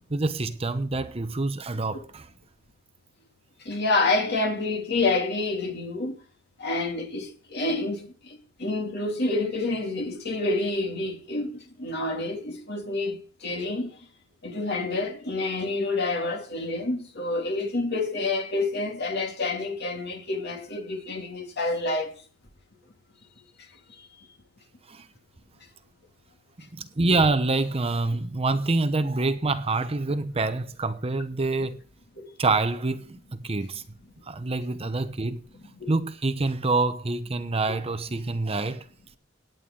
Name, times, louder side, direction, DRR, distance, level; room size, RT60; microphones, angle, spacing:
voice 1, 0.1-2.3 24.9-25.1 26.6-31.8 32.4-33.8 34.2-35.4 35.9-38.8, right 3 dB, 30° right, 0.8 m, -26 dB
voice 2, 3.7-6.1 6.6-8.1 8.6-11.5 11.8-13.9 14.4-22.1 35.8-35.9, left 2 dB, 55° left, 2.5 m, -28 dB
18.0 x 9.2 x 3.8 m
head